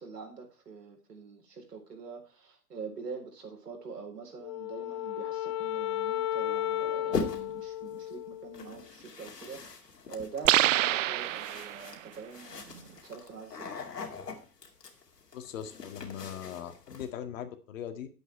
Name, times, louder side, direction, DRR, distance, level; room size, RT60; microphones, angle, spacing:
voice 1, 0.0-13.7, right 5 dB, 80° right, 3 dB, 4.0 m, -44 dB
Wind instrument woodwind instrument, 4.4-8.9, left 13 dB, 20° left, 0.4 m, -34 dB
sound 1, 7.1-7.7 8.5-17.1, left 4 dB, 80° left, 2.5 m, -41 dB
sound 2, 10.5-12.0, right 14 dB, 55° right, 0.5 m, -26 dB
voice 2, 15.3-18.1, left 9 dB, 55° left, 7 dB, 1.9 m, -40 dB
10.0 x 8.0 x 4.4 m, 0.35 s
figure-of-eight pair, 115°, 47 cm